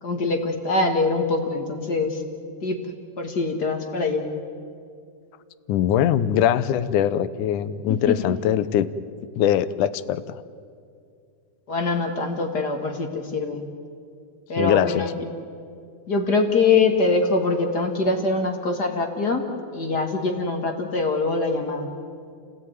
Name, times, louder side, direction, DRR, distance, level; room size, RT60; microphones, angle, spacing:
voice 1, 0.0-2.2 2.6-2.8 3.2-4.3 7.9-8.3 11.7-13.6 14.5-15.1 16.1-19.4 19.7-21.9, left 3 dB, 35° left, 4 dB, 1.9 m, -23 dB
voice 2, 5.7-8.9 9.4-10.4 14.6-15.0, left 10 dB, 75° left, 15 dB, 2.1 m, -22 dB
30.0 x 16.5 x 9.4 m, 2.3 s
omnidirectional pair, 3.9 m